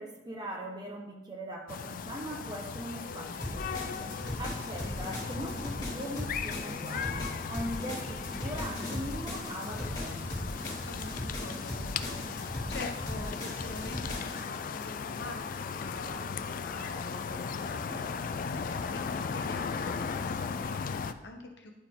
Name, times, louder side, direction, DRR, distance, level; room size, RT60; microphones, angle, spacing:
voice 1, 0.0-10.3 17.9-18.0, equal, 25° right, 0 dB, 1.0 m, -40 dB
sound 1, 1.7-21.1, left 6 dB, 50° left, 0.3 m, -37 dB
sound 2, 3.4-14.4, left 1 dB, 25° left, 2.2 m, -38 dB
voice 2, 10.8-21.7, left 2 dB, 70° left, 3 dB, 1.0 m, -45 dB
10.5 x 4.6 x 3.7 m, 1.1 s
head